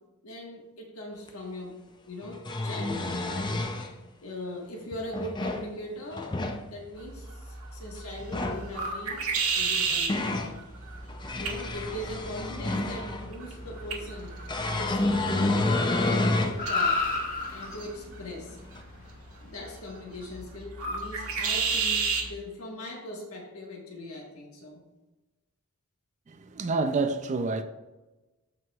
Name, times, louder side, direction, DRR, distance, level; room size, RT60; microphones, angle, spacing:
voice 1, 0.2-1.7 2.1-3.5 4.2-6.4 6.7-9.2 9.5-10.6 11.4-14.3 14.7-15.6 16.0-17.0 17.5-18.6 19.4-24.8, left 1 dB, 75° left, 1.5 m, -40 dB
sound 1, 1.3-1.4 2.2-3.9 4.9-5.7 6.1-6.6 8.2-8.7 9.6-10.5 11.1-13.3 14.5-16.6 17.1-17.2 18.8-18.9, left 2 dB, 20° left, 0.5 m, -29 dB
sound 2, 7.0-22.3, right 5 dB, 80° right, 1.5 m, -34 dB
Car, 10.8-20.4, left 3 dB, 40° left, 1.3 m, -36 dB
voice 2, 26.3-27.6, right 3 dB, 35° right, 0.4 m, -28 dB
14.0 x 4.7 x 2.4 m
head